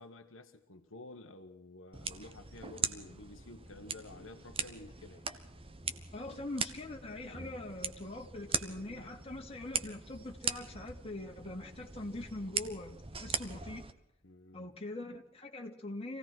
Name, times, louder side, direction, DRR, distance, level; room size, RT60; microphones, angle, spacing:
voice 1, 0.0-5.3 14.2-14.7, left 2 dB, 65° left, 6 dB, 1.4 m, -51 dB
sound 1, 1.9-13.9, right 5 dB, 30° right, 1.3 m, -40 dB
voice 2, 6.1-13.8 14.5-16.2, left 2 dB, 30° left, 1 dB, 2.7 m, -43 dB
26.0 x 17.5 x 6.1 m, 0.81 s
head